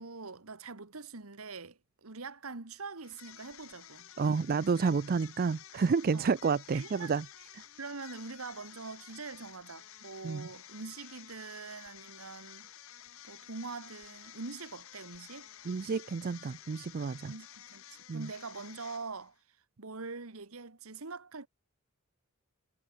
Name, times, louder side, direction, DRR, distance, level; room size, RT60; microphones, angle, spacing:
voice 1, 0.0-4.1 6.1-6.3 6.7-7.2 7.8-12.7 13.2-15.5 17.3-19.3 19.8-21.5, right 4 dB, 75° right, 1.6 m, -44 dB
sound 1, 3.0-19.4, left 11 dB, 65° left, 1.3 m, -52 dB
voice 2, 4.2-7.3 7.6-7.7 10.2-10.5 15.7-17.3 18.1-18.3, right 5 dB, 45° right, 0.4 m, -30 dB
head